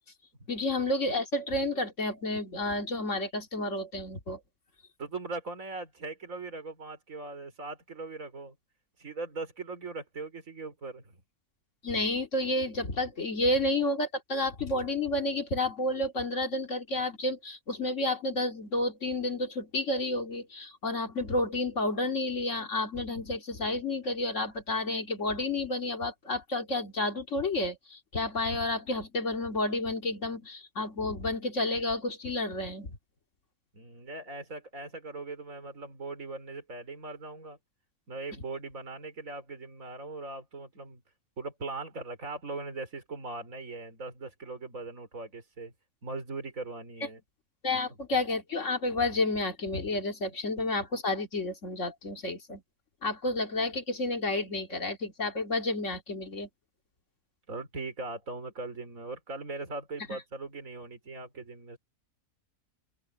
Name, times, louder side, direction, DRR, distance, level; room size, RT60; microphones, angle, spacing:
voice 1, 0.5-4.4 11.8-33.0 47.6-52.6 53.0-56.5 60.1-60.2, left 2 dB, 50° left, 2.5 m, -30 dB
voice 2, 5.0-8.5 9.0-11.2 33.7-37.6 38.1-41.0 41.4-45.7 46.0-47.2 57.5-61.8, right 3 dB, 60° right, 4.8 m, -40 dB
open air
omnidirectional pair, 1.6 m